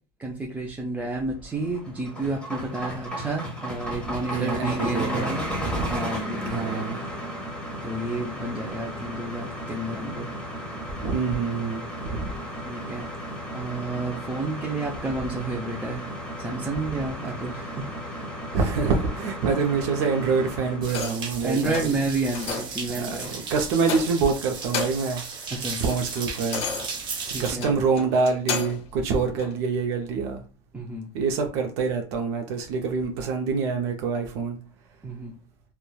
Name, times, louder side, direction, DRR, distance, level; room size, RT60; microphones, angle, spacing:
voice 1, 0.2-5.5 5.9-6.9 7.8-10.3 12.6-13.1 13.5-16.1 16.4-18.2 21.4-23.5 25.5-25.8 27.3-27.7 30.7-31.1 35.0-35.3, right 2 dB, 10° right, 0.3 m, -30 dB
sound 1, 1.5-20.9, equal, 10° left, 0.9 m, -34 dB
voice 2, 4.3-5.3 5.6-5.9 6.5-7.0 11.0-12.3 18.5-21.8 23.0-23.2 23.5-25.2 25.8-26.6 27.2-30.4 31.1-34.6, right 5 dB, 70° right, 0.5 m, -26 dB
sound 2, 20.8-27.5, right 5 dB, 35° right, 0.8 m, -35 dB
sound 3, 20.9-21.3 21.7-22.0 22.3-22.8 23.2-23.4 23.8-24.3 24.6-25.2 25.5-28.9 29.4-29.5, left 5 dB, 45° left, 0.5 m, -33 dB
3.0 x 2.1 x 2.2 m
supercardioid pair, 135°, 14 cm